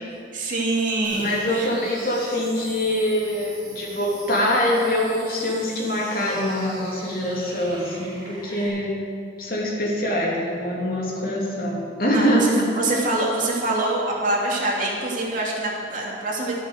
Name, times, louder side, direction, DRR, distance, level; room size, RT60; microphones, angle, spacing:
voice 1, 0.3-1.7 12.1-16.5, right 2 dB, 45° right, -3 dB, 2.8 m, -25 dB
sound 1, 1.0-8.7, right 2 dB, 25° right, 3.7 m, -42 dB
voice 2, 1.1-8.9 9.4-12.7, equal, 55° left, -4 dB, 3.0 m, -24 dB
12.5 x 9.4 x 6.5 m, 2.3 s
head